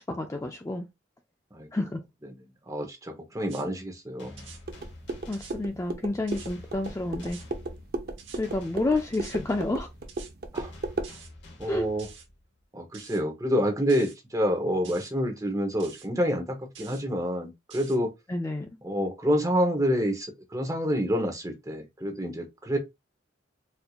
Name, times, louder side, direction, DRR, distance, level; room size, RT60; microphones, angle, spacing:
voice 1, 0.1-0.9 1.7-2.0 5.3-7.4 8.3-9.9 11.7-11.9 18.3-18.8, left 2 dB, 15° left, 0.4 m, -29 dB
voice 2, 2.3-4.5 10.5-10.7 11.6-12.1 12.7-18.1 18.8-22.8, equal, 15° right, 0.8 m, -28 dB
sound 1, 3.4-3.7 4.4-4.6 5.3-5.6 6.3-6.5 7.2-7.5 8.2-8.4 9.1-9.4 10.1-10.3 11.0-11.3 12.0-12.3 12.9-13.2 13.9-14.2 14.8-15.1 15.8-16.1 16.7-17.0 17.7-18.0, right 7 dB, 85° right, 0.9 m, -48 dB
sound 2, 4.2-12.7, left 1 dB, 60° left, 1.0 m, -48 dB
sound 3, 4.7-11.1, right 2 dB, 50° right, 0.6 m, -36 dB
4.3 x 2.6 x 2.3 m
head